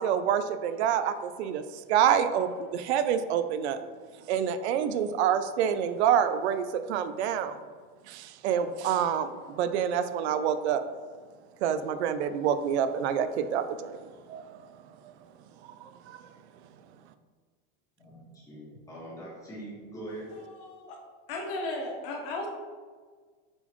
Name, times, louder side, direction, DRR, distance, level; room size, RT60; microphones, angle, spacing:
voice 1, 0.0-1.6 1.9-3.8 4.3-7.6 8.1-9.3 9.6-10.8 11.6-14.4 15.8-16.2, right 8 dB, 80° right, 11 dB, 0.5 m, -27 dB
voice 2, 18.0-20.2, right 1 dB, 10° left, -6 dB, 1.6 m, -43 dB
voice 3, 20.3-21.0 21.3-22.5, left 2 dB, 55° left, 2 dB, 1.1 m, -35 dB
7.6 x 4.1 x 3.0 m, 1.5 s
supercardioid pair, 170°, 33 cm